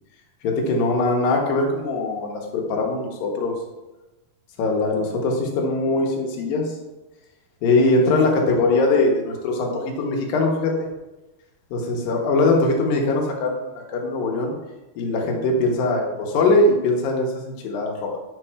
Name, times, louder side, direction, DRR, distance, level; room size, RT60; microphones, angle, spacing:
voice 1, 0.4-3.5 4.6-6.7 7.6-10.8 11.7-14.5 15.0-18.2, left 2 dB, 80° left, 0 dB, 2.8 m, -21 dB
8.2 x 3.3 x 4.8 m, 1.0 s
omnidirectional pair, 4.2 m